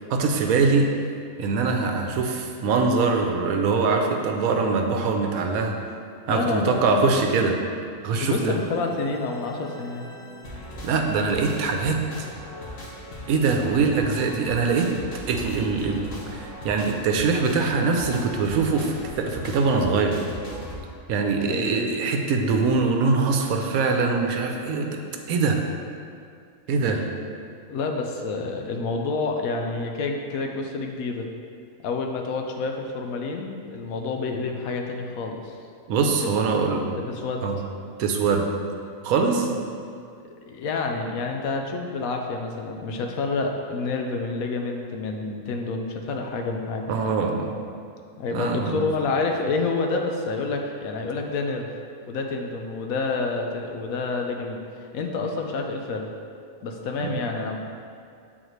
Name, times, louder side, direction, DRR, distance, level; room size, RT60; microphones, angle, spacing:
voice 1, 0.1-0.9 1.4-5.8 6.3-7.6 8.0-8.6 10.8-12.0 13.3-14.9 15.3-20.2 21.1-25.0 25.3-25.6 26.7-27.0 35.9-36.9 37.4-37.6 38.0-38.5 39.0-39.5 46.9-47.6 48.3-48.8 57.0-57.1, right 4 dB, 85° right, 3 dB, 1.1 m, -23 dB
voice 2, 6.3-7.0 8.1-10.1 21.4-21.8 27.7-31.3 31.8-35.6 36.2-36.3 36.5-36.6 36.9-37.5 39.4-39.6 40.2-46.8 48.2-51.7 52.1-56.1 56.6-57.6, left 3 dB, 80° left, 3 dB, 1.1 m, -28 dB
sound 1, 8.1-20.8, left 1 dB, 60° left, 1.5 m, -39 dB
7.8 x 4.0 x 3.0 m, 2.3 s
omnidirectional pair, 1.5 m